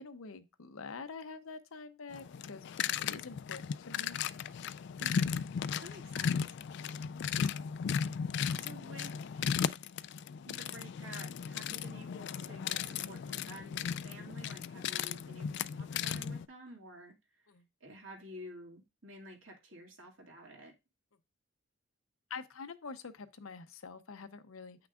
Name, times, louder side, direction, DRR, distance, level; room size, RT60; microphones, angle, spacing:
voice 1, 0.0-4.2 17.5-17.6 22.3-24.9, left 4 dB, 80° left, 0.7 m, -46 dB
sound 1, 2.1-16.5, left 7 dB, 55° left, 0.3 m, -36 dB
voice 2, 5.0-5.4 5.8-6.4 8.5-9.5 10.4-17.1 17.8-20.7, right 1 dB, 70° right, 2.2 m, -51 dB
8.6 x 6.0 x 2.4 m
head